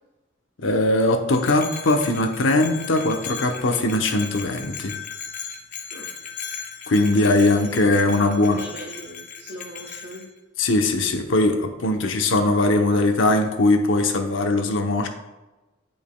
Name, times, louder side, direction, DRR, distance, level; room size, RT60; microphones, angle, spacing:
voice 1, 0.6-5.0 6.9-8.6 10.6-15.1, left 2 dB, 80° left, 5 dB, 0.8 m, -20 dB
Bell, 1.3-10.3, left 6 dB, 40° left, 0.7 m, -37 dB
voice 2, 7.0-7.8 8.1-10.3, right 1 dB, 60° right, -2 dB, 1.1 m, -39 dB
10.5 x 5.2 x 2.3 m, 1.1 s
head